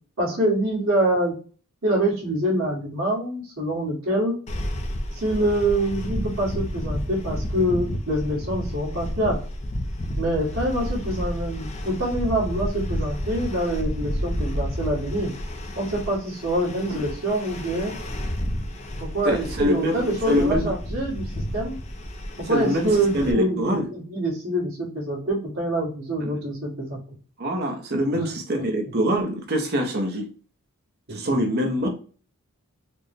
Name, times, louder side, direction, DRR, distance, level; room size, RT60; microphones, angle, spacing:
voice 1, 0.2-1.3 1.8-4.4 5.1-9.4 10.1-15.3 15.7-17.9 19.0-21.8 22.5-27.0 28.1-28.2 31.1-31.4, right 1 dB, 65° right, -6 dB, 1.7 m, -25 dB
sound 1, 4.5-23.3, equal, 30° left, 0.5 m, -31 dB
voice 2, 19.2-20.7 22.5-22.9 23.1-23.9 26.2-26.4 27.4-30.3 31.1-31.9, equal, 50° right, 3 dB, 0.7 m, -24 dB
4.2 x 2.1 x 3.3 m, 0.40 s
head